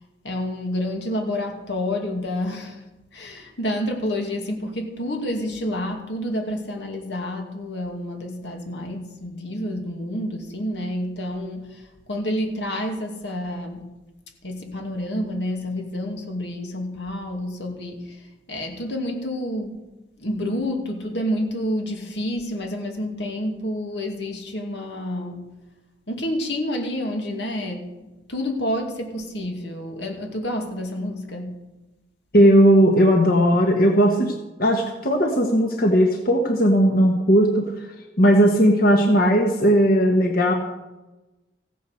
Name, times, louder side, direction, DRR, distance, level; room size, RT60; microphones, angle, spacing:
voice 1, 0.2-2.8 3.1-13.9 14.4-19.9 20.2-25.5 26.1-31.6, left 1 dB, 85° left, 2 dB, 2.5 m, -29 dB
voice 2, 32.3-34.3 34.6-37.9 38.2-40.5, equal, 55° left, 2 dB, 1.5 m, -17 dB
15.5 x 9.2 x 6.6 m, 1.1 s
head